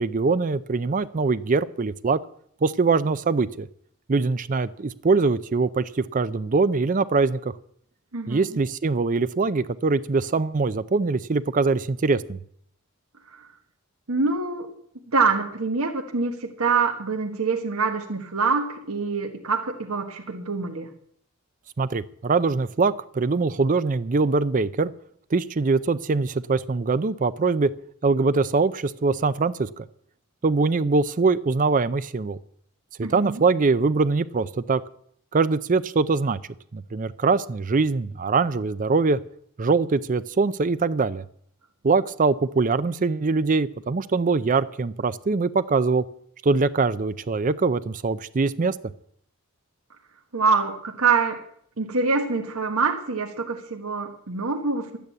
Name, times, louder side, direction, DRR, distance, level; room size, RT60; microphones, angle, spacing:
voice 1, 0.0-2.2 2.6-3.7 4.1-7.5 8.3-12.4 21.8-24.9 25.3-27.7 28.0-29.9 30.4-32.4 33.0-34.8 35.3-36.4 36.7-39.2 39.6-41.2 41.8-46.0 46.4-48.7, right 4 dB, 35° right, 14 dB, 0.5 m, -23 dB
voice 2, 8.1-8.6 13.3-13.5 14.1-14.8 15.1-20.9 33.0-33.4 50.3-51.4 51.8-55.0, right 4 dB, 80° right, 3 dB, 1.4 m, -25 dB
12.5 x 9.3 x 8.3 m, 0.65 s
head